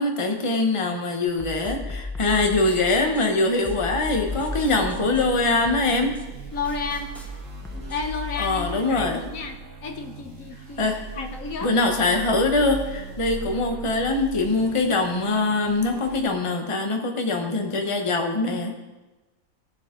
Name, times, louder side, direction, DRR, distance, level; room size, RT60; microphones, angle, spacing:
voice 1, 0.0-6.2 8.4-9.3 10.8-11.3 11.6-18.7, left 2 dB, 25° left, 3 dB, 1.0 m, -23 dB
sound 1, 1.3-8.2, left 2 dB, ahead, 0.5 m, -36 dB
sound 2, 4.2-16.2, right 1 dB, 65° right, 2.2 m, -38 dB
voice 2, 6.5-7.1 7.7-11.7, left 4 dB, 70° left, 5 dB, 1.3 m, -32 dB
17.5 x 7.1 x 3.8 m, 1.1 s
omnidirectional pair, 1.5 m